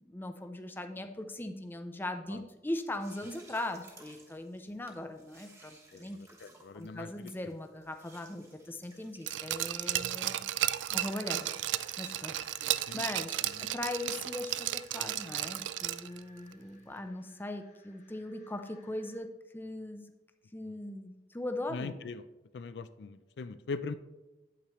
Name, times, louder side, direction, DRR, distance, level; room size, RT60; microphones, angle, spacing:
voice 1, 0.0-6.2 6.7-10.4 10.9-20.1 20.5-22.0, left 1 dB, 10° left, 6 dB, 0.5 m, -40 dB
sound 1, 3.0-15.7, right 2 dB, 15° right, 1.1 m, -60 dB
voice 2, 5.9-7.3 10.9-11.0 12.9-13.0 13.7-13.8 20.6-20.8 21.7-22.2 22.5-23.9, left 4 dB, 70° left, 12 dB, 0.4 m, -41 dB
Glass, 9.3-16.2 16.5-16.6, right 13 dB, 85° right, 0.3 m, -34 dB
sound 2, 11.0-19.2, left 2 dB, 40° left, 1.1 m, -61 dB
8.6 x 8.2 x 3.0 m, 1.1 s
head